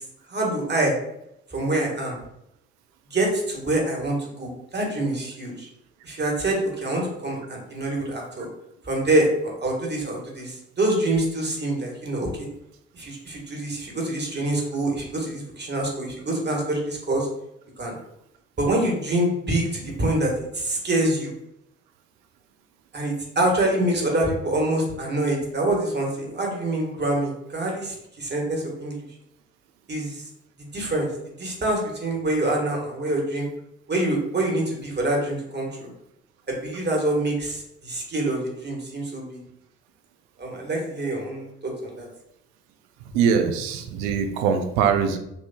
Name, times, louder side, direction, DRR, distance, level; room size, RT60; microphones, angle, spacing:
voice 1, 0.3-0.9 1.5-2.2 3.1-5.7 6.0-8.5 8.8-12.5 12.9-17.3 17.8-17.9 18.6-21.3 22.9-29.0 29.9-30.2 30.7-31.1 31.4-33.5 33.9-35.9 36.5-39.4 40.4-42.1, right 1 dB, 35° right, -1 dB, 1.4 m, -25 dB
voice 2, 43.1-45.2, right 6 dB, 85° right, 7 dB, 0.5 m, -22 dB
4.1 x 2.7 x 2.3 m, 0.80 s
hypercardioid pair, 50°, 30 cm